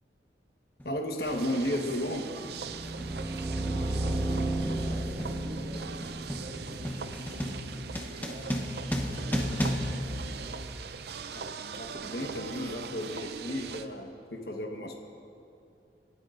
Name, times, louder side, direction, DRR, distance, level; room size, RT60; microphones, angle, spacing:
voice 1, 0.8-2.3 11.3-11.4 11.8-15.0, equal, 60° left, 2 dB, 1.2 m, -33 dB
sound 1, 0.8-1.0 1.9-2.2 2.4-11.0, equal, 10° left, 1.0 m, -35 dB
sound 2, 1.2-13.9, right 5 dB, 65° right, 0.5 m, -41 dB
sound 3, 2.6-7.5, right 1 dB, 15° right, 1.5 m, -33 dB
voice 2, 3.6-8.6 9.0-10.7, equal, 45° right, -2 dB, 2.1 m, -47 dB
28.0 x 12.5 x 2.5 m, 2.5 s
head